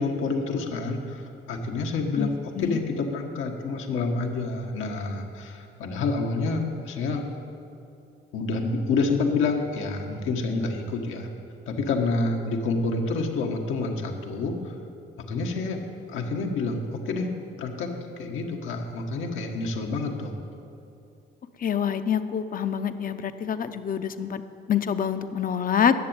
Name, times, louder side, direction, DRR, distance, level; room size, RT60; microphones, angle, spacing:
voice 1, 0.0-2.3 2.6-7.2 8.3-11.3 11.7-14.7 15.3-15.8 16.1-17.9 18.2-20.3, left 3 dB, 85° left, 2 dB, 1.4 m, -28 dB
voice 2, 21.6-24.4 24.7-25.9, left 8 dB, 45° left, 10 dB, 0.7 m, -26 dB
11.0 x 7.2 x 8.8 m, 2.7 s
cardioid pair, 90°, 20 cm